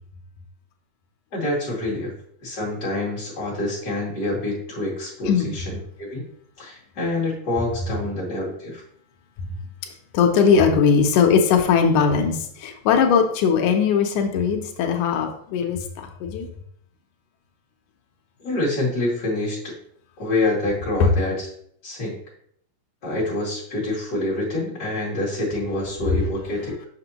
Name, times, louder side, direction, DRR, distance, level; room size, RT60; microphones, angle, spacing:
voice 1, 1.3-2.1 2.4-6.2 6.6-8.8 18.4-19.7 20.2-21.5 21.8-22.1 23.0-26.8, left 2 dB, 35° left, -6 dB, 2.7 m, -26 dB
voice 2, 10.1-16.5 21.0-21.1, left 6 dB, 90° left, 4 dB, 2.2 m, -19 dB
6.0 x 5.9 x 2.9 m, 0.65 s
omnidirectional pair, 3.4 m